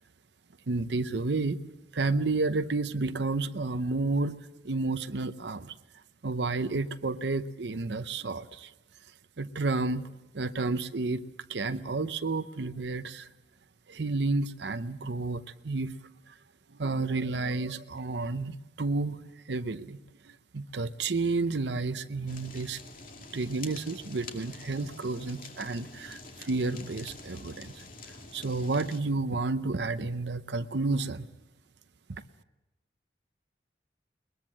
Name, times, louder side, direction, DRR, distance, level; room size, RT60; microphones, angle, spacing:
voice 1, 0.7-1.6 1.9-4.4 4.6-5.7 6.2-8.7 9.4-10.1 10.3-11.2 11.5-13.3 13.9-15.9 16.3-16.4 16.8-20.0 20.2-22.8 23.2-27.8 28.3-31.3 32.1-32.2, right 3 dB, 75° right, 11 dB, 0.8 m, -31 dB
Fire, 22.3-29.0, left 3 dB, 50° left, 2.2 m, -47 dB
21.5 x 21.0 x 7.4 m, 1.0 s
head